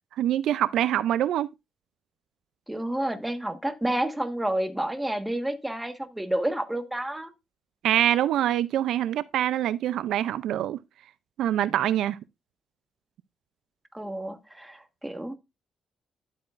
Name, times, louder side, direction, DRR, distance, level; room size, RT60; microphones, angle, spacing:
voice 1, 0.2-1.5 7.8-10.8 11.4-12.2, right 11 dB, 80° right, 0.5 m, -25 dB
voice 2, 2.7-7.3 13.9-15.4, right 1 dB, 10° right, 1.5 m, -30 dB
11.5 x 8.5 x 2.5 m
cardioid pair, 90°, 0 cm